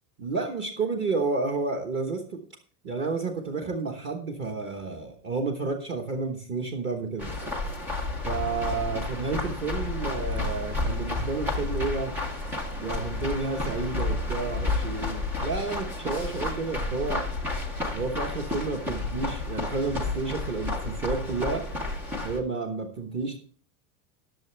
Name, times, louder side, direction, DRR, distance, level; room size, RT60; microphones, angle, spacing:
voice 1, 0.2-2.4 2.8-7.3 8.2-12.1 12.8-17.2 17.9-21.6 22.2-23.4, right 4 dB, 25° right, 2 dB, 1.2 m, -31 dB
sound 1, 7.2-22.4, left 2 dB, 5° right, 0.4 m, -31 dB
20.0 x 7.0 x 3.3 m, 0.43 s
supercardioid pair, 175°, 47 cm